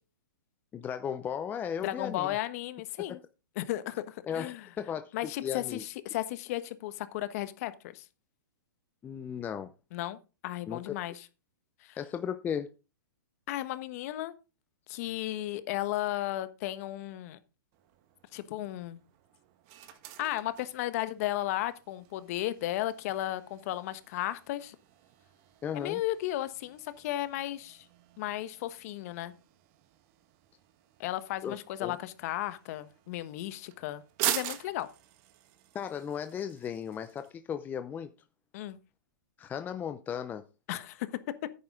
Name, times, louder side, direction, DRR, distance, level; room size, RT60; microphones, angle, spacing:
voice 1, 0.7-2.3 3.0-3.2 4.2-5.1 5.4-5.8 9.0-9.7 10.7-11.0 12.0-12.7 25.6-26.0 31.4-32.0 35.7-38.1 39.4-40.4, left 8 dB, 15° left, 0.6 m, -36 dB
voice 2, 1.8-3.2 3.5-4.7 5.1-8.0 9.9-11.3 11.8-12.0 13.5-14.3 14.9-17.4 18.3-19.0 20.2-24.7 25.7-27.9 28.2-29.3 31.0-34.9 38.5-38.8 40.7-41.1, left 14 dB, 45° left, 1.2 m, -34 dB
sound 1, 17.7-37.3, right 13 dB, 40° right, 1.4 m, -44 dB
10.5 x 8.9 x 3.8 m
hypercardioid pair, 135°, 11 cm